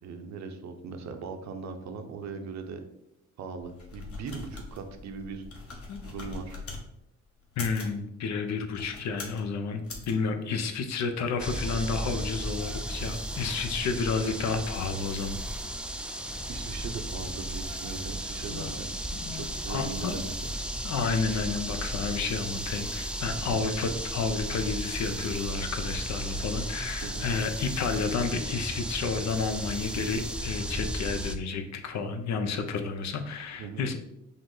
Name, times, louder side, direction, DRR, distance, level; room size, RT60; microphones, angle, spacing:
voice 1, 0.0-2.8 3.4-5.4 6.0-6.6 16.5-18.9 19.3-20.3 23.3-23.6 27.0-27.3 33.6-33.9, right 5 dB, 65° right, 6 dB, 0.7 m, -39 dB
sound 1, 3.6-6.8 7.4-8.0 8.7-9.4 9.8-10.1, left 3 dB, 50° left, 1.2 m, -41 dB
voice 2, 7.6-15.4 18.5-18.8 19.1-20.2 20.8-34.0, left 4 dB, 65° left, 7 dB, 0.6 m, -31 dB
sound 2, 11.4-31.3, right 1 dB, 5° right, 0.3 m, -35 dB
5.4 x 2.0 x 3.8 m, 0.84 s
cardioid pair, 90°, 30 cm